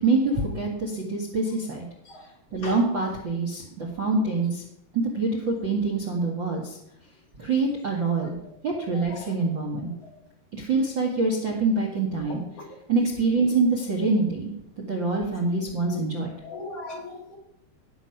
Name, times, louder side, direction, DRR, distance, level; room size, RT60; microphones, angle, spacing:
voice 1, 0.0-1.8 2.5-4.6 4.9-6.8 7.4-8.4 8.6-9.9 10.6-12.4 12.9-14.5 14.9-16.3, right 3 dB, 45° right, 1 dB, 1.6 m, -25 dB
voice 2, 16.4-17.4, left 3 dB, 45° left, 1 dB, 2.5 m, -38 dB
17.5 x 7.1 x 5.8 m, 0.80 s
omnidirectional pair, 4.5 m